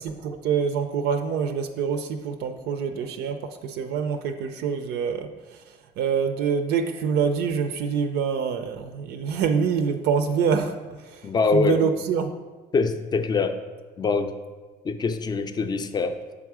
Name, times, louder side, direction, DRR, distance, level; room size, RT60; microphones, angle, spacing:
voice 1, 0.2-5.6 6.0-10.7 11.0-12.3, right 6 dB, 80° right, 7 dB, 0.5 m, -26 dB
voice 2, 11.2-11.8 12.7-13.6 14.0-14.3 14.8-16.2, left 4 dB, 25° left, 8 dB, 0.4 m, -24 dB
6.8 x 3.6 x 4.8 m, 1.4 s
cardioid pair, 110°, 17 cm